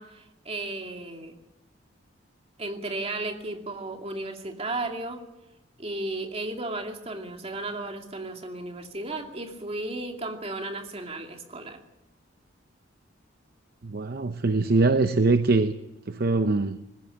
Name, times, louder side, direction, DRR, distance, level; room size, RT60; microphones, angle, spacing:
voice 1, 0.0-1.4 2.6-5.2 5.8-11.8, right 2 dB, 30° right, 4 dB, 2.4 m, -34 dB
voice 2, 13.8-15.7 16.1-16.8, right 3 dB, 50° right, 10 dB, 0.7 m, -23 dB
20.5 x 15.5 x 9.9 m, 0.93 s
head